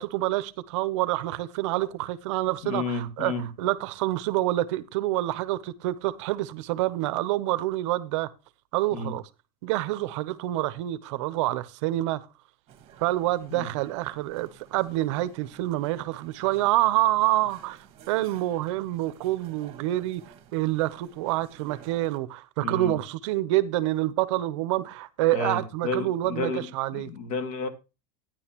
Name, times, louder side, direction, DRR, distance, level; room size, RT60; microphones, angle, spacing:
voice 1, 0.0-3.3 3.6-8.3 8.7-9.2 9.6-12.3 13.0-20.2 20.5-27.1, right 16 dB, 50° right, 0.6 m, -27 dB
voice 2, 2.6-3.5 8.9-9.1 13.5-13.7 22.6-23.0 25.3-27.7, left 3 dB, 70° left, 1.9 m, -32 dB
sound 1, 12.7-22.2, right 8 dB, 30° right, 1.3 m, -52 dB
11.5 x 9.9 x 2.9 m
supercardioid pair, 175°, 19 cm